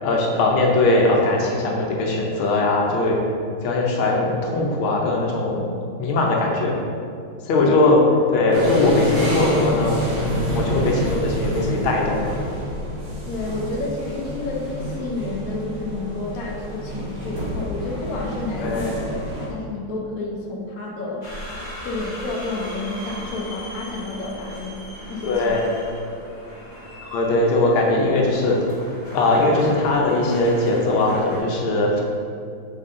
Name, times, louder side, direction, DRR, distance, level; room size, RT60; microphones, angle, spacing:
voice 1, 0.0-3.2 3.6-5.6 6.0-6.7 7.5-8.0 8.3-12.3 18.6-18.9 25.3-25.6 27.1-28.6 29.1-32.0, left 2 dB, 75° left, -1 dB, 1.6 m, -20 dB
sound 1, 8.5-19.5, equal, 55° right, 1.4 m, -28 dB
voice 2, 13.3-18.9 19.5-21.3 21.8-24.7 25.1-25.3, left 2 dB, 55° left, -3 dB, 1.1 m, -30 dB
sound 2, 21.2-31.4, left 1 dB, 30° left, 0.9 m, -38 dB
6.3 x 4.0 x 3.7 m, 2.3 s
omnidirectional pair, 2.3 m